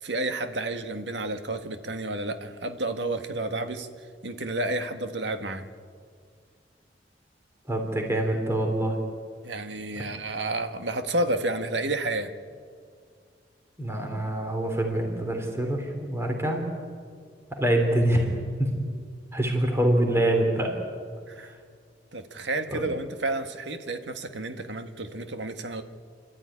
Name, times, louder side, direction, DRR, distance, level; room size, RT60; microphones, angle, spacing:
voice 1, 0.0-3.9 4.2-5.7 9.4-12.3 21.3-21.5 22.1-25.8, right 2 dB, 85° right, 7 dB, 1.7 m, -30 dB
voice 2, 7.7-9.0 13.8-16.7 17.5-18.7 19.3-20.8 21.4-21.5 22.7-22.8, right 1 dB, 15° right, 2 dB, 3.1 m, -25 dB
29.5 x 13.5 x 10.0 m, 2.1 s
head